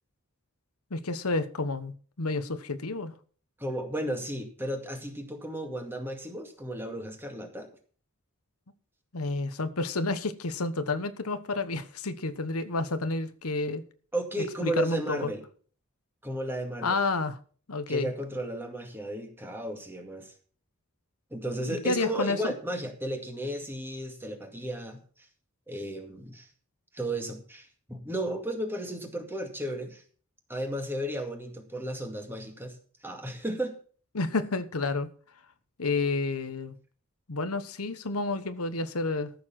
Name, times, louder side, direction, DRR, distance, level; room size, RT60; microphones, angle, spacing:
voice 1, 0.9-3.1 9.1-13.8 14.4-15.3 16.8-17.4 17.7-18.1 21.7-22.5 34.1-35.1 35.8-36.8 37.3-39.3, left 3 dB, 90° left, 1.1 m, -30 dB
voice 2, 3.6-7.7 14.1-15.4 16.2-17.0 17.9-20.3 21.3-25.0 25.7-26.5 26.9-30.0 30.5-32.8 33.0-33.7, right 1 dB, 10° right, 2.2 m, -34 dB
14.0 x 6.9 x 6.0 m
head